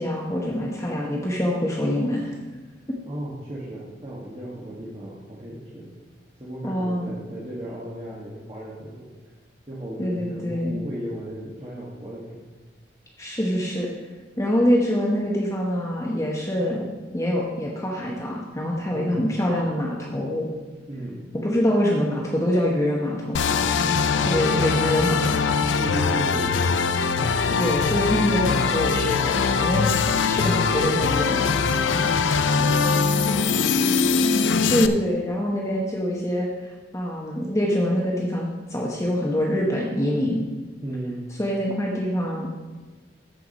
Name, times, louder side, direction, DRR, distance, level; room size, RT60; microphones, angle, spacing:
voice 1, 0.0-2.3 6.6-7.1 10.0-10.8 13.2-13.9 14.4-16.9 17.1-20.5 21.4-23.7 24.2-25.5 27.5-29.9 30.2-31.5 34.7-40.4 41.4-42.5, equal, 15° left, -3 dB, 1.0 m, -25 dB
voice 2, 3.1-5.9 6.4-9.1 9.7-12.4 18.8-19.2 20.9-21.2 24.3-25.1 25.7-26.9 32.1-33.6 40.8-41.2, right 1 dB, 30° right, -6 dB, 1.4 m, -35 dB
sound 1, 23.3-34.9, left 5 dB, 85° left, 0.5 m, -22 dB
13.5 x 4.7 x 5.2 m, 1.3 s
head